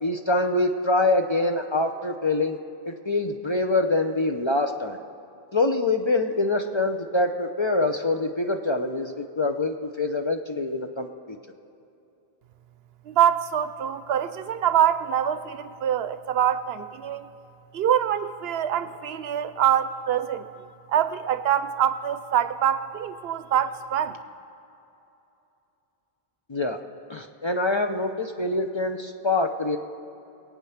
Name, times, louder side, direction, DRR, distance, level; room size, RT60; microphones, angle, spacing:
voice 1, 0.0-2.6 2.9-5.0 5.5-11.4 26.5-26.8 27.1-29.8, left 2 dB, 35° left, 5 dB, 0.5 m, -25 dB
voice 2, 13.0-17.3 17.7-20.5 20.9-24.2, right 9 dB, 80° right, 12 dB, 0.9 m, -24 dB
22.0 x 8.7 x 5.7 m, 2.9 s
omnidirectional pair, 1.0 m